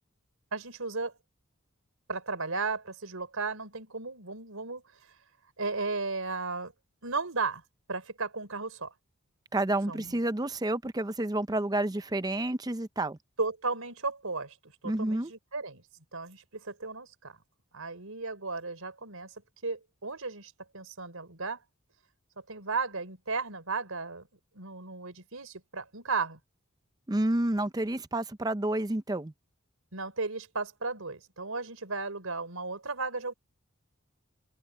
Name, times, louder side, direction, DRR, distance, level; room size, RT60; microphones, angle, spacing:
voice 1, 0.5-1.1 2.1-4.8 5.6-6.7 7.0-7.6 7.9-8.9 9.9-10.2 13.4-14.6 15.0-15.8 16.1-17.4 17.7-19.3 19.6-21.6 22.5-24.3 24.5-26.4 29.9-33.3, right 4 dB, 85° right, 4.2 m, -35 dB
voice 2, 9.5-13.2 14.8-15.3 27.1-29.3, right 1 dB, 20° right, 0.6 m, -29 dB
head